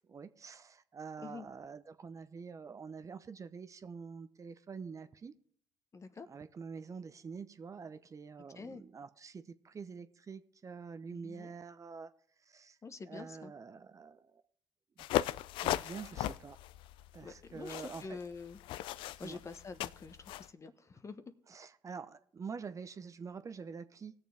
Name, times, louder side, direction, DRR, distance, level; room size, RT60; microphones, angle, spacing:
voice 1, 0.1-5.3 6.3-12.1 12.5-12.8 13.1-14.4 15.0-15.1 15.6-16.6 17.1-18.2 19.2-19.4 21.5-24.1, right 5 dB, 35° right, 11 dB, 0.8 m, -46 dB
voice 2, 5.9-6.3 8.5-8.8 11.1-11.5 12.8-13.5 17.2-18.6 18.9-21.2, left 4 dB, 35° left, 10 dB, 1.1 m, -47 dB
sound 1, 15.0-20.5, left 14 dB, 65° left, 0.3 m, -37 dB
19.5 x 7.0 x 3.5 m, 0.64 s
hypercardioid pair, 60°, 9 cm